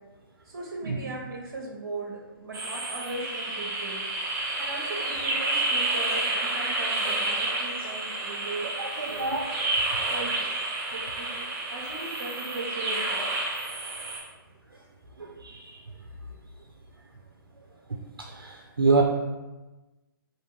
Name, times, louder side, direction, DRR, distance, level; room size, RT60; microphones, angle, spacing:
voice 1, 0.5-4.0 4.6-8.7 9.1-9.3 10.1-10.4 10.9-11.5 11.7-13.2, right 2 dB, 55° right, -1 dB, 0.8 m, -38 dB
sound 1, 2.5-14.2, right 2 dB, 15° right, 0.8 m, -30 dB
voice 2, 8.8-9.5 9.7-10.0 15.2-15.8 18.3-19.0, right 4 dB, 85° right, 0 dB, 0.4 m, -27 dB
3.4 x 2.7 x 2.9 m, 1.1 s
figure-of-eight pair, 130°, 12 cm